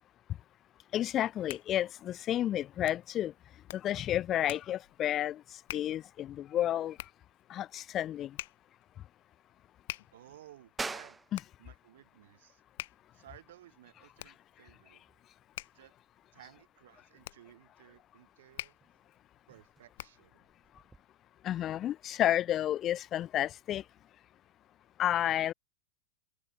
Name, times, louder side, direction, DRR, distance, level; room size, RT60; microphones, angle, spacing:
voice 1, 0.9-3.3 3.7-5.4 5.7-7.0 7.5-8.3 11.3-11.4 21.4-23.8 25.0-25.5, left 12 dB, 30° left, 0.5 m, -31 dB
Hands, 1.3-20.4, left 18 dB, 55° left, 2.4 m, -49 dB
voice 2, 10.1-11.2 11.6-12.6 13.1-15.0 15.7-15.9 16.3-18.8 19.5-20.5, right 13 dB, 55° right, 7.3 m, -57 dB
sound 1, 10.8-21.0, right 4 dB, 10° right, 1.4 m, -49 dB
figure-of-eight pair, 90°, 0 cm